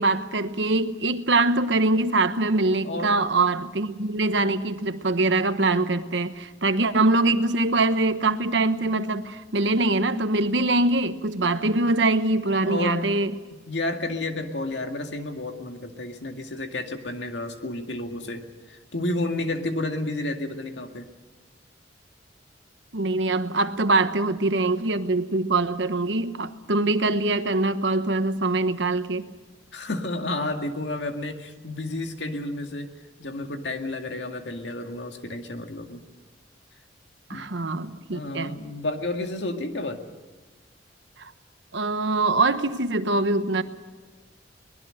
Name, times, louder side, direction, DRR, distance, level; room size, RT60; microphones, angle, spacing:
voice 1, 0.0-13.4 22.9-29.2 37.3-38.6 41.7-43.6, right 2 dB, 80° right, 10 dB, 1.2 m, -23 dB
voice 2, 2.8-3.1 12.6-13.0 13.7-21.1 29.7-32.9 33.2-36.0 37.3-37.5 38.1-40.0, left 2 dB, 75° left, 5 dB, 2.1 m, -31 dB
23.0 x 20.0 x 6.6 m, 1.3 s
head